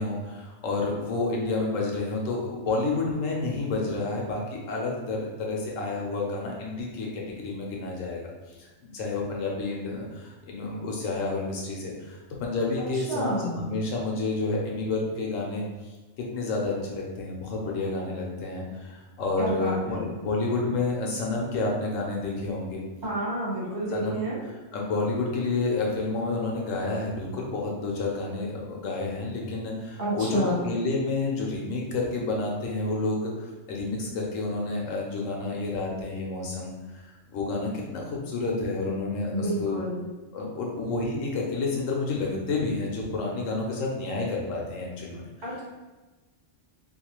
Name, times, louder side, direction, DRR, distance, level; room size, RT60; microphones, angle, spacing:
voice 1, 0.0-8.6 8.9-15.7 16.2-22.8 23.9-24.2 24.7-39.8 40.3-45.2, left 3 dB, 85° left, -1 dB, 1.1 m, -30 dB
voice 2, 12.9-13.7 19.4-20.1 23.0-24.4 30.0-30.6 39.3-40.1 45.4-45.6, right 1 dB, 60° right, -7 dB, 1.5 m, -30 dB
2.7 x 2.3 x 3.0 m, 1.2 s
omnidirectional pair, 1.3 m